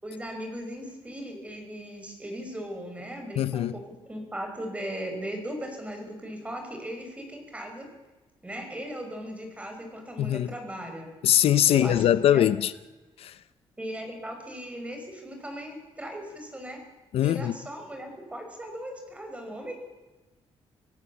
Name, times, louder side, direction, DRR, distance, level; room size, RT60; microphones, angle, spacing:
voice 1, 0.0-7.9 8.4-11.1 11.7-12.5 13.8-16.8 17.2-19.7, equal, 10° right, 5.3 m, -38 dB
voice 2, 3.4-3.7 10.2-10.5 11.2-12.7 13.2-13.3 17.1-17.5, left 11 dB, 70° left, 0.7 m, -22 dB
26.0 x 17.0 x 7.1 m
cardioid pair, 145°, 10 cm